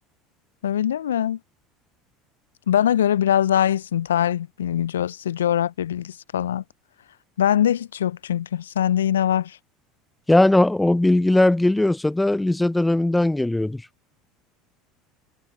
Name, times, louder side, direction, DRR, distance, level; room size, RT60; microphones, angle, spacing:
voice 1, 0.6-1.4 2.7-6.6 7.4-9.6, left 10 dB, 75° left, 0.6 m, -22 dB
voice 2, 10.3-13.8, left 1 dB, 10° left, 0.6 m, -19 dB
figure-of-eight pair, 70°, 0 cm